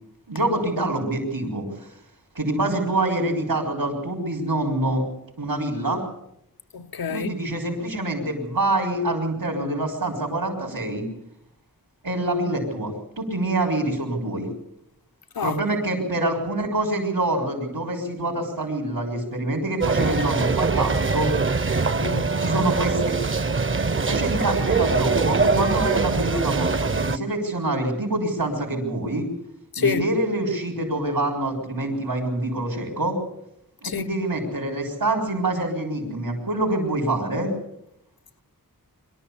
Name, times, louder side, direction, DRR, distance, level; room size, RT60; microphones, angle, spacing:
voice 1, 0.3-1.9 2.3-5.0 5.4-6.0 7.1-11.0 12.0-14.5 15.4-21.3 22.4-23.1 24.1-29.3 29.8-33.2 33.8-37.5, right 2 dB, 85° right, 5.0 m, -26 dB
voice 2, 6.7-7.3 15.3-15.6 22.0-22.3 29.7-30.1 33.8-34.2, left 6 dB, 85° left, 0.8 m, -27 dB
sound 1, 19.8-27.2, right 4 dB, 35° right, 0.7 m, -23 dB
24.0 x 13.0 x 8.5 m
wide cardioid pair, 55°, 35 cm